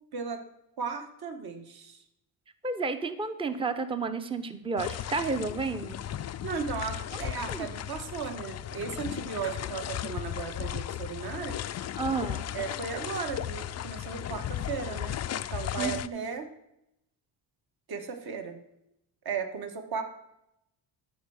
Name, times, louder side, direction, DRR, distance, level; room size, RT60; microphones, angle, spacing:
voice 1, 0.1-0.4 0.8-2.0 6.2-11.6 12.5-16.5 17.9-18.6 19.2-20.0, right 5 dB, 50° right, 6 dB, 1.5 m, -36 dB
voice 2, 2.6-6.0 7.1-7.2 7.5-7.7 12.0-12.5 15.8-16.2, right 4 dB, 10° right, 10 dB, 0.6 m, -31 dB
sound 1, 4.8-16.1, left 11 dB, 35° left, 0.4 m, -36 dB
13.5 x 4.6 x 6.4 m, 0.83 s
cardioid pair, 95°, 49 cm